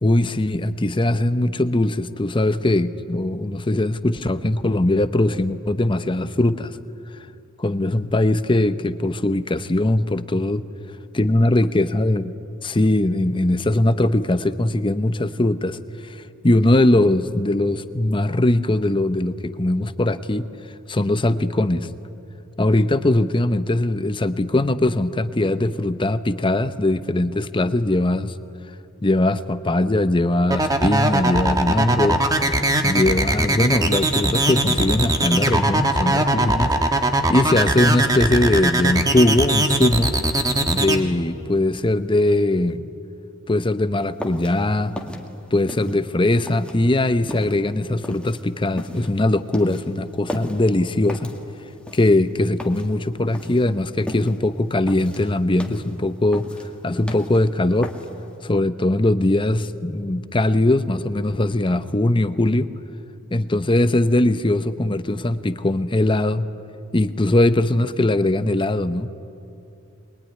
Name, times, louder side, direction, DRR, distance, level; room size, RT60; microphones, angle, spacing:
voice 1, 0.0-6.7 7.6-10.6 11.1-12.2 12.6-20.5 20.9-21.9 22.6-28.3 29.0-32.2 32.8-36.7 37.3-40.1 40.7-42.9 43.5-44.9 45.5-51.3 51.9-56.5 56.8-57.9 58.4-62.7 63.3-66.5 66.9-69.1, left 1 dB, 25° left, 11 dB, 0.7 m, -20 dB
sound 1, 30.5-41.0, right 1 dB, 20° right, 1.5 m, -20 dB
sound 2, 44.0-58.3, left 1 dB, 5° left, 2.1 m, -36 dB
23.0 x 22.0 x 10.0 m, 2.7 s
head